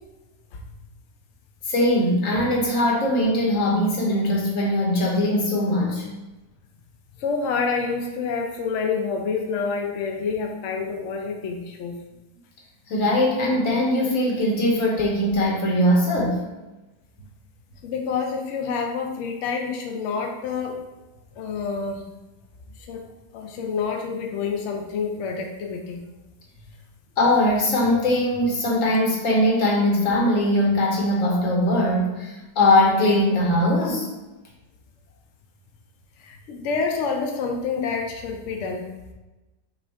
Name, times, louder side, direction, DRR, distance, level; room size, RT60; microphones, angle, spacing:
voice 1, 1.7-6.1 12.9-16.4 27.2-34.1, left 1 dB, 55° left, -2 dB, 1.3 m, -21 dB
voice 2, 7.2-11.9 17.8-20.8 21.4-22.1 22.9-23.0 23.3-26.0 36.2-38.8, left 5 dB, 75° left, 2 dB, 0.6 m, -28 dB
6.0 x 2.5 x 3.3 m, 1.1 s
omnidirectional pair, 1.8 m